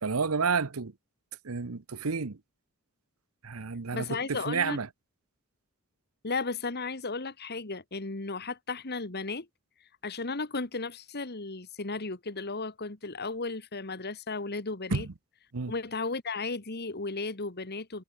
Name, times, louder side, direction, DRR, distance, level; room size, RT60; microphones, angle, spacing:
voice 1, 0.0-0.9 1.4-2.4 3.4-4.9 14.9-15.1 15.5-15.7, right 5 dB, 80° right, 0.9 m, -30 dB
voice 2, 3.9-4.8 6.2-9.5 10.0-15.1 15.7-18.0, left 3 dB, 50° left, 1.9 m, -34 dB
head